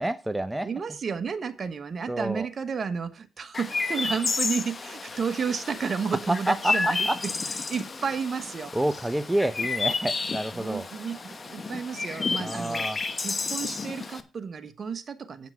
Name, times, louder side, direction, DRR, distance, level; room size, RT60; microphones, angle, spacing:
voice 1, 0.0-0.7 2.1-2.5 6.3-7.2 8.7-10.9 12.4-13.0, right 1 dB, 10° right, 0.5 m, -28 dB
voice 2, 0.6-7.3 7.7-8.7 10.5-12.8 13.2-15.5, right 6 dB, 45° right, 1.2 m, -32 dB
Chirp tweet, 3.5-14.2, left 4 dB, 35° left, 1.1 m, -31 dB
8.9 x 5.8 x 5.7 m
supercardioid pair, 70°, 0 cm